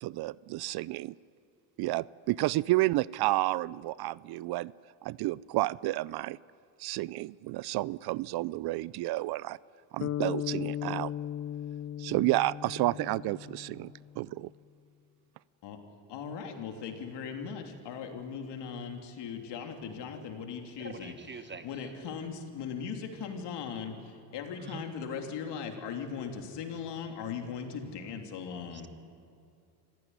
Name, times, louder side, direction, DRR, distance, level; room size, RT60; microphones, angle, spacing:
voice 1, 0.0-1.1 1.8-4.7 5.0-6.4 6.8-9.6 9.9-11.1 12.0-14.5, right 18 dB, 60° right, 22 dB, 0.5 m, -31 dB
sound 1, 10.0-14.3, left 11 dB, 40° left, 0.5 m, -37 dB
voice 2, 16.1-28.9, left 6 dB, 70° left, 4 dB, 3.3 m, -39 dB
voice 3, 20.8-21.9 24.6-24.8, right 5 dB, 25° right, 11 dB, 1.2 m, -45 dB
26.0 x 15.5 x 9.6 m, 2.5 s
supercardioid pair, 95°, 44 cm